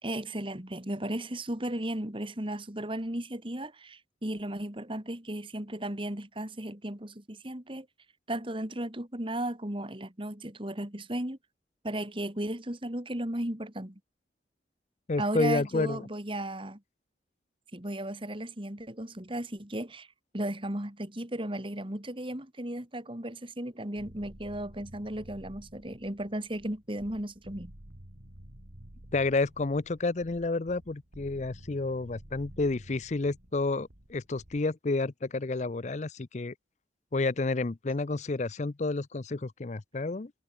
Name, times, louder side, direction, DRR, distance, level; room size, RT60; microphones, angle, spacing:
voice 1, 0.0-7.9 8.3-11.4 11.8-14.0 15.2-16.8 17.7-20.1 20.3-27.7, right 1 dB, 30° right, 2.7 m, -35 dB
voice 2, 15.1-16.0 29.1-36.5 37.1-40.3, left 3 dB, 40° left, 0.6 m, -30 dB
sound 1, 24.0-34.6, equal, 65° right, 3.8 m, -51 dB
head